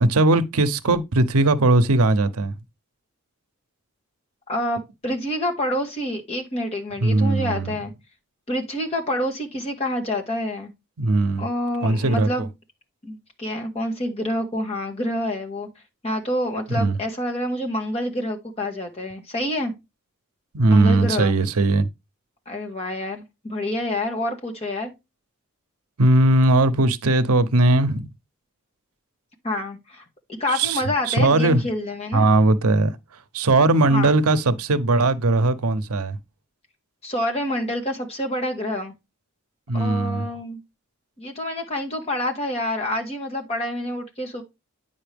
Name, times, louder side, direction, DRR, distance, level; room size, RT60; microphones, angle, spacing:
voice 1, 0.0-2.5 7.0-7.8 11.0-11.5 11.8-12.5 16.8-17.0 20.5-21.9 26.0-28.1 30.5-31.6 32.1-32.9 33.3-36.2 39.7-40.3, right 2 dB, 80° right, 0.7 m, -19 dB
voice 2, 4.5-7.9 8.5-10.7 11.4-12.5 13.0-15.7 16.0-19.7 20.7-21.3 22.5-24.9 29.4-30.0 30.4-32.3 33.9-34.1 37.0-38.9 39.7-40.6 41.2-44.4, left 1 dB, 30° left, 1.6 m, -27 dB
9.2 x 5.5 x 3.4 m
head